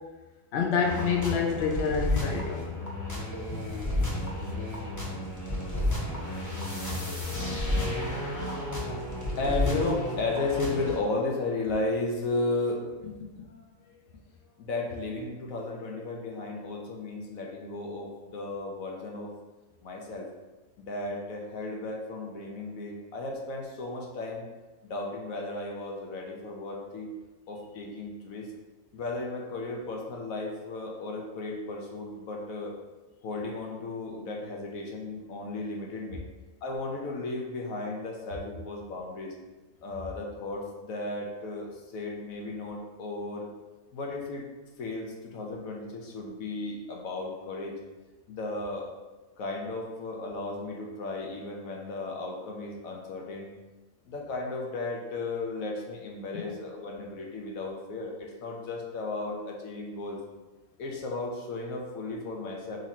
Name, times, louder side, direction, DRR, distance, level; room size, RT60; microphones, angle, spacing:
voice 1, 0.5-2.6 56.3-56.4, left 6 dB, 60° left, 1 dB, 0.8 m, -27 dB
sound 1, 0.8-11.0, left 1 dB, 15° left, 0.7 m, -32 dB
voice 2, 7.2-14.2 14.6-19.3 19.8-20.3 20.8-24.4 24.8-27.1 27.5-28.5 28.9-32.7 33.2-36.2 36.6-39.3 39.8-43.5 43.9-44.5 44.8-47.8 48.3-48.9 49.4-53.5 54.1-60.2 60.8-62.8, left 2 dB, 80° left, 0 dB, 1.2 m, -35 dB
3.8 x 3.1 x 4.1 m, 1.2 s
omnidirectional pair, 1.4 m